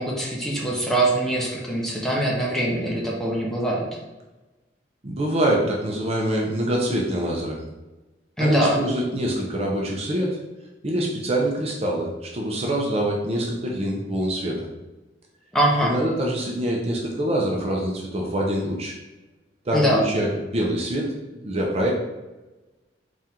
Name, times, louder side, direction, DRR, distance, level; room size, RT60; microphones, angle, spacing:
voice 1, 0.0-3.9 8.4-8.8 15.5-16.0 19.7-20.0, right 1 dB, ahead, -4 dB, 0.8 m, -23 dB
voice 2, 5.0-7.6 8.4-10.4 10.8-14.7 15.8-19.0 19.7-21.9, right 1 dB, 35° right, -1 dB, 0.6 m, -25 dB
3.6 x 2.5 x 4.3 m, 1.1 s
head